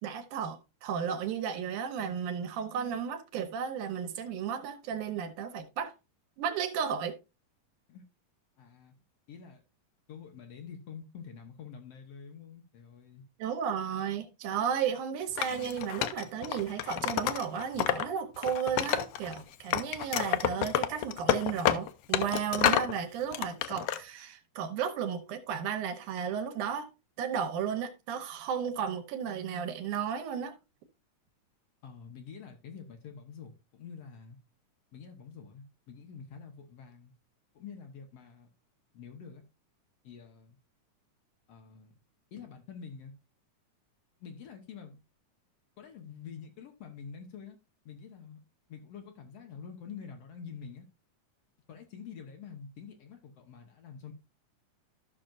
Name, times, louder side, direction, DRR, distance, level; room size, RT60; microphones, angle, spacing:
voice 1, 0.0-5.9 6.4-7.2 13.4-26.9 27.2-30.5, right 7 dB, 80° right, 2.5 m, -34 dB
voice 2, 8.6-8.9 9.3-9.6 10.1-13.2 31.8-34.4 34.9-37.1 37.5-38.5 38.9-39.4 40.0-40.6 41.5-41.9 42.3-43.1 44.2-45.0 45.8-47.6 47.9-48.4 48.7-50.9 51.7-54.1, left 6 dB, 60° left, 2.1 m, -47 dB
Wood, 15.4-18.1 18.4-19.4 19.7-22.9 23.3-24.0, left 11 dB, 80° left, 1.4 m, -29 dB
13.5 x 6.1 x 2.5 m
omnidirectional pair, 3.5 m